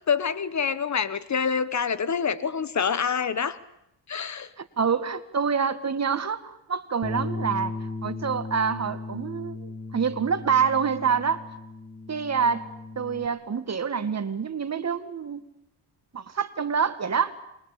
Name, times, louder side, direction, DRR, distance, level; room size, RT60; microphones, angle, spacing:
voice 1, 0.0-3.6 4.1-4.5, left 6 dB, 40° left, 16 dB, 1.3 m, -26 dB
voice 2, 4.6-7.7 8.0-11.4 12.1-12.7 13.0-15.4 16.1-17.3, right 6 dB, 35° right, 11 dB, 2.1 m, -26 dB
Bass guitar, 7.0-13.3, left 3 dB, 15° left, 1.8 m, -36 dB
27.5 x 22.5 x 8.6 m, 0.83 s
cardioid pair, 85°, 43 cm